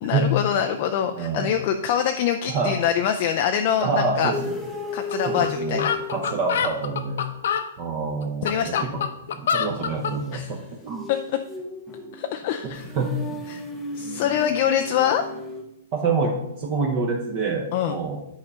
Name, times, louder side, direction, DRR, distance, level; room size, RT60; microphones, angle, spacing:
voice 1, 0.0-4.3 4.9-5.9 8.4-8.8 10.3-10.5 11.1-11.2 12.1-12.9 13.5-13.6 13.9-15.2 17.7-18.0, left 9 dB, 35° left, 5 dB, 0.4 m, -24 dB
voice 2, 1.1-1.5 2.5-2.7 3.8-4.5 5.3-7.2 7.8-8.7 9.3-10.6 10.8-11.1 12.6-13.1 15.9-18.2, right 4 dB, 25° right, -1 dB, 0.9 m, -26 dB
sound 1, 4.3-6.9 10.4-15.6, left 2 dB, 5° left, 0.8 m, -34 dB
sound 2, 5.1-5.2 5.4-5.5 5.8-7.7 8.2-10.2, left 7 dB, 60° left, 0.8 m, -26 dB
9.6 x 4.8 x 5.5 m, 0.86 s
hypercardioid pair, 175°, 0 cm